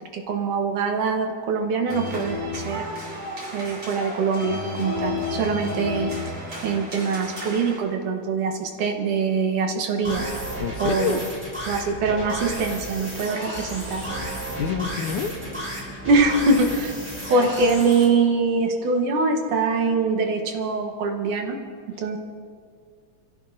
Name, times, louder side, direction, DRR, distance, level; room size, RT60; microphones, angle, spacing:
voice 1, 0.1-2.8 3.5-6.1 6.6-10.3 10.8-11.2 11.7-14.0 16.0-16.9 17.3-21.6 22.0-22.2, right 4 dB, 85° right, 3 dB, 2.9 m, -23 dB
sound 1, 1.9-7.8, left 2 dB, 35° right, 4.4 m, -32 dB
sound 2, 10.0-18.0, right 1 dB, 5° right, 4.9 m, -33 dB
voice 2, 10.6-11.2 14.6-15.3, left 7 dB, 80° left, 7 dB, 2.3 m, -27 dB
28.0 x 15.5 x 2.7 m, 2.1 s
omnidirectional pair, 3.5 m